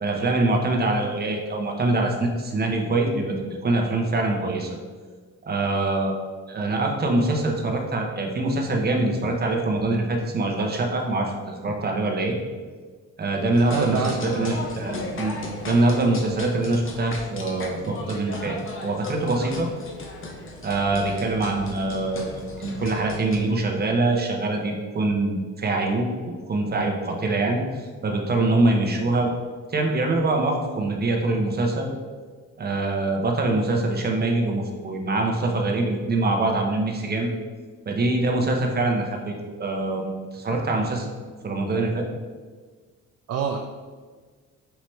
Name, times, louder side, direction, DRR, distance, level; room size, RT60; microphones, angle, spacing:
voice 1, 0.0-4.8 5.5-6.2 6.5-12.3 13.2-15.3 15.6-19.7 20.6-26.1 26.5-29.3 29.7-31.9 32.6-37.3 37.9-41.2 41.4-42.1, right 2 dB, 30° right, 2 dB, 0.8 m, -24 dB
sound 1, 13.5-23.4, left 2 dB, 45° left, 0.8 m, -36 dB
voice 2, 13.7-14.5 43.3-43.6, right 6 dB, 55° right, 2 dB, 0.4 m, -26 dB
5.6 x 2.9 x 3.2 m, 1.5 s
cardioid pair, 90°, 30 cm